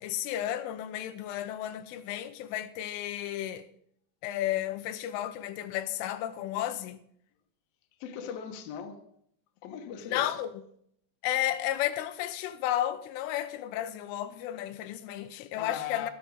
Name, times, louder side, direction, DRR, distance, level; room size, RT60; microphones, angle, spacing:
voice 1, 0.0-3.7 4.2-7.0 10.0-10.6 11.2-16.1, left 12 dB, 85° left, 3.2 m, -33 dB
voice 2, 8.0-9.1 9.6-10.4 15.5-16.1, left 8 dB, 65° left, 2.5 m, -39 dB
12.0 x 11.0 x 5.2 m
omnidirectional pair, 5.6 m